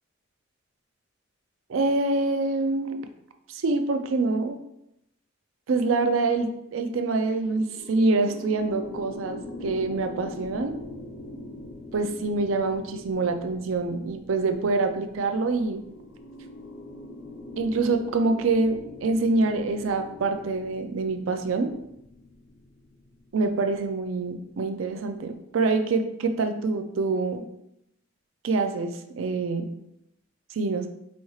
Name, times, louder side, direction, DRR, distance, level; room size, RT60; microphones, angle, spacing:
voice 1, 1.7-3.0 3.5-4.6 5.7-10.7 11.9-15.8 17.6-21.7 23.3-27.4 28.4-29.7 30.5-30.9, right 3 dB, 90° right, 6 dB, 0.4 m, -25 dB
sound 1, 7.0-24.2, left 1 dB, 60° left, 0.6 m, -43 dB
4.2 x 3.0 x 2.3 m, 0.81 s
head